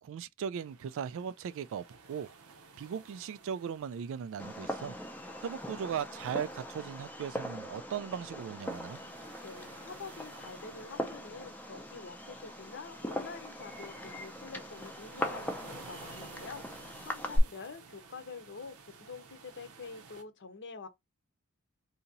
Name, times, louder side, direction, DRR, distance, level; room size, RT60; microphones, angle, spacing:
voice 1, 0.0-2.3 2.8-5.0 5.4-9.0, right 7 dB, 65° right, 0.3 m, -38 dB
sound 1, 0.5-20.2, right 4 dB, 85° right, 0.8 m, -55 dB
Fireworks, 4.4-17.4, equal, 10° left, 0.5 m, -40 dB
voice 2, 9.4-20.9, left 4 dB, 55° left, 0.7 m, -47 dB
2.8 x 2.7 x 3.9 m
head